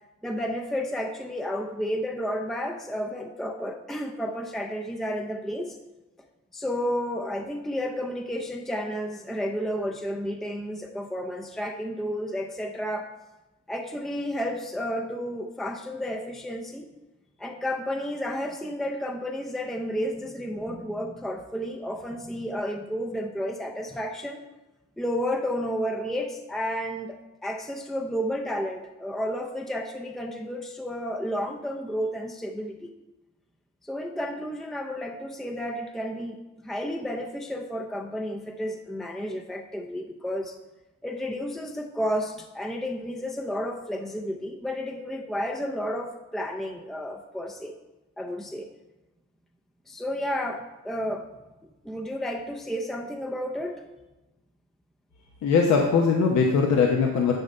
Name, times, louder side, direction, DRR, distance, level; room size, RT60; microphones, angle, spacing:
voice 1, 0.2-5.8 6.5-13.1 13.7-16.9 17.4-24.4 25.0-32.9 33.8-36.4 36.6-40.6 41.0-47.7 48.2-48.7 49.9-51.3 51.8-53.8, equal, ahead, 3 dB, 0.6 m, -31 dB
voice 2, 55.4-57.3, left 5 dB, 65° left, 1 dB, 1.0 m, -21 dB
10.5 x 3.9 x 5.5 m, 1.0 s
cardioid pair, 90°, 30 cm